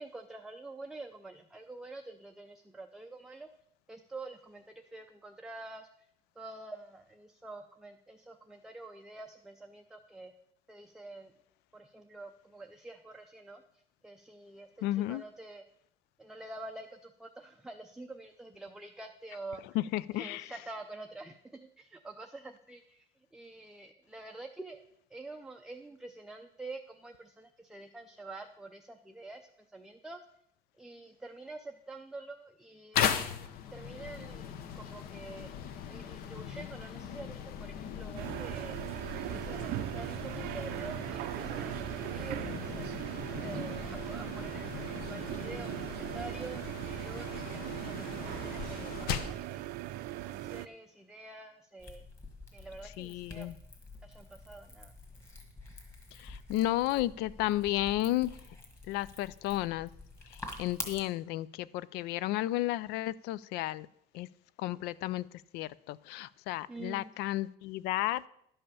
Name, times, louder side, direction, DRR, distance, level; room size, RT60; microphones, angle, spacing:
voice 1, 0.0-3.5 3.9-4.6 4.9-5.9 6.4-10.3 10.7-11.3 11.7-13.6 14.0-14.7 15.1-15.6 16.2-19.6 20.1-23.1 23.3-24.8 25.1-30.2 30.8-33.1 33.7-35.5 35.9-38.8 39.1-43.0 43.4-49.6 50.1-52.0 52.5-53.5 54.0-54.9 66.7-67.1, right 2 dB, 5° right, 4 dB, 0.4 m, -47 dB
voice 2, 14.8-15.2 19.7-20.5 52.8-53.5 56.1-58.4 58.9-59.9 60.2-63.9 64.1-64.3 64.6-65.3 65.5-68.3, left 15 dB, 85° left, 20 dB, 0.4 m, -33 dB
sound 1, 32.9-49.4, left 8 dB, 70° left, 0.9 m, -39 dB
sound 2, 38.1-50.7, right 14 dB, 75° right, 0.5 m, -39 dB
sound 3, 51.8-61.0, left 2 dB, 15° left, 1.6 m, -48 dB
11.0 x 5.5 x 6.9 m, 0.74 s
cardioid pair, 160°, 16 cm